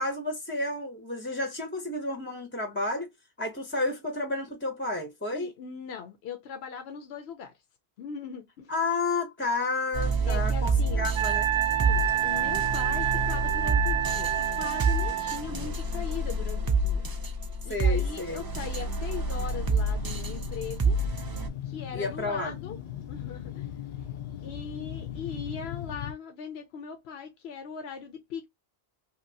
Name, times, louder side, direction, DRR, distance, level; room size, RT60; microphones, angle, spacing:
voice 1, 0.0-3.1 3.4-5.5 8.7-11.5 17.7-18.4 21.9-22.6, left 2 dB, 15° left, 0.6 m, -31 dB
voice 2, 5.3-7.5 8.0-8.7 10.2-11.1 11.8-17.0 17.6-21.0 21.6-22.8 23.1-23.7 24.4-28.5, left 6 dB, 75° left, 0.9 m, -40 dB
sound 1, 9.9-21.5, right 2 dB, 35° right, 0.3 m, -28 dB
Wind instrument woodwind instrument, 11.1-15.4, right 11 dB, 65° right, 0.7 m, -28 dB
sound 2, 19.1-26.1, left 11 dB, 60° left, 0.6 m, -39 dB
2.9 x 2.8 x 2.6 m
omnidirectional pair, 1.1 m